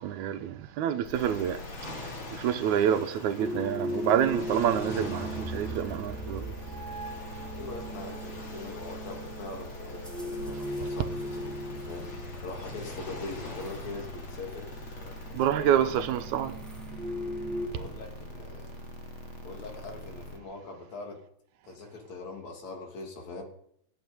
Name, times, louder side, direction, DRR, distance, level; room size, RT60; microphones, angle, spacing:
voice 1, 0.0-1.6 2.4-6.4 15.3-16.5, right 9 dB, 85° right, 2.2 m, -27 dB
sound 1, 1.0-20.4, left 2 dB, 25° left, 1.8 m, -44 dB
sound 2, 1.1-15.5, left 2 dB, 90° left, 5.2 m, -46 dB
sound 3, 3.4-17.7, equal, ahead, 2.6 m, -38 dB
voice 2, 7.5-15.7 17.7-18.7 19.4-21.2 21.7-23.4, left 3 dB, 65° left, 4.1 m, -42 dB
14.5 x 9.0 x 9.3 m
omnidirectional pair, 3.3 m